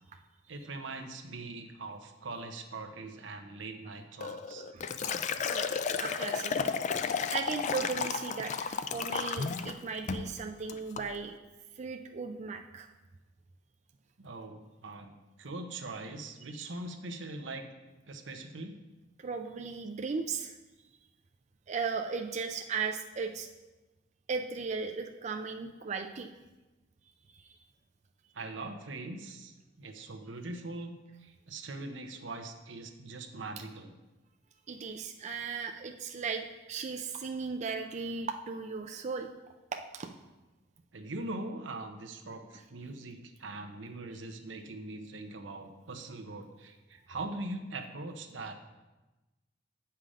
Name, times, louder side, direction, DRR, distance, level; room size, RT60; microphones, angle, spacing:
voice 1, 0.5-4.7 14.2-17.7 18.1-18.7 28.3-33.9 40.9-48.5, right 2 dB, 85° right, 4 dB, 0.9 m, -42 dB
Liquid, 4.2-9.8 10.1-10.3 10.7-11.1, left 6 dB, 40° left, 0.4 m, -33 dB
voice 2, 6.0-6.5 7.3-11.4 11.8-12.9 19.2-20.5 21.7-23.5 24.3-26.3 34.7-39.3 39.7-40.1, right 5 dB, 40° right, 5 dB, 0.4 m, -36 dB
8.7 x 5.8 x 4.9 m, 1.1 s
head